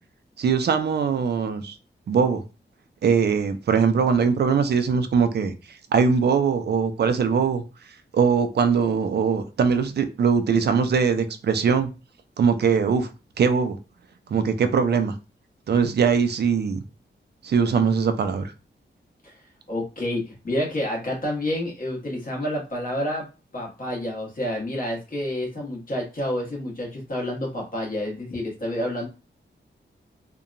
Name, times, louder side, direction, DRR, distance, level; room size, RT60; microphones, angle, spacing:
voice 1, 0.4-1.8 2.1-2.4 3.0-5.5 5.9-7.6 8.1-11.9 12.4-13.1 13.4-13.8 14.3-15.1 15.7-16.8 17.4-18.5, right 6 dB, 60° right, 0.4 m, -21 dB
voice 2, 19.7-23.3 23.5-29.1, left 1 dB, 45° left, 1.2 m, -29 dB
2.8 x 2.2 x 2.5 m
wide cardioid pair, 125°, 20 cm